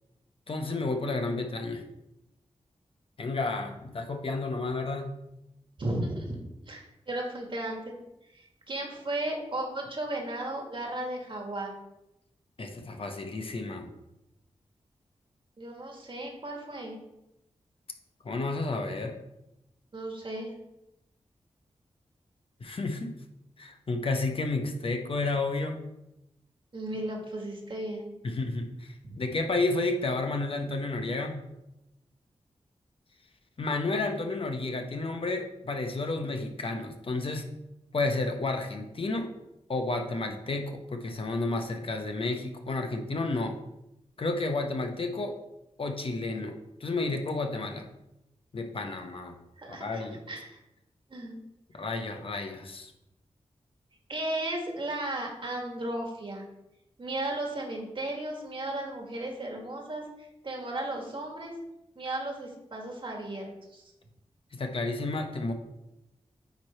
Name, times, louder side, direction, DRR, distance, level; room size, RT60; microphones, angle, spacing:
voice 1, 0.5-1.8 3.2-5.1 12.6-13.9 18.2-19.2 22.6-23.2 23.6-25.8 28.2-31.4 33.6-37.5 37.9-39.3 39.7-43.6 44.2-45.4 45.8-47.9 48.5-49.4 49.7-50.2 51.7-52.9 64.5-65.5, left 3 dB, 55° left, 4 dB, 0.8 m, -31 dB
voice 2, 5.8-6.4 6.7-8.0 8.3-11.7 15.6-17.0 19.9-20.5 26.7-28.1 29.0-29.2 49.6-50.6 51.1-51.4 54.1-56.5 57.0-61.5 62.0-63.8, right 1 dB, 50° right, 1 dB, 1.8 m, -35 dB
9.2 x 3.2 x 4.3 m, 0.89 s
cardioid pair, 60°, 11 cm